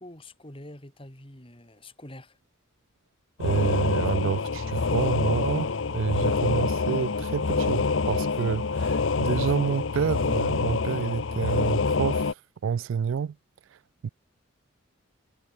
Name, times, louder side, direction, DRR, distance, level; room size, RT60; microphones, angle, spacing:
voice 1, 0.0-2.4, left 1 dB, 25° left, 3.2 m, -45 dB
sound 1, 3.4-12.3, left 4 dB, 65° left, 0.7 m, -26 dB
voice 2, 3.4-12.3 12.6-13.4 14.0-14.1, right 7 dB, 65° right, 0.3 m, -28 dB
head